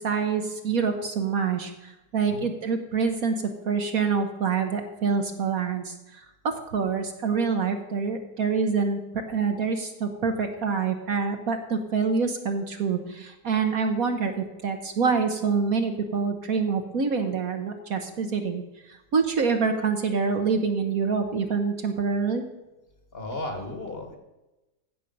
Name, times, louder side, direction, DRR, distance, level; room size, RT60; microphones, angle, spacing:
voice 1, 0.0-9.0 9.3-18.6 18.9-22.4, right 5 dB, 55° right, 5 dB, 1.3 m, -26 dB
voice 2, 23.1-24.2, left 2 dB, 35° left, 4 dB, 1.6 m, -34 dB
15.5 x 6.3 x 5.4 m, 1.0 s
omnidirectional pair, 1.9 m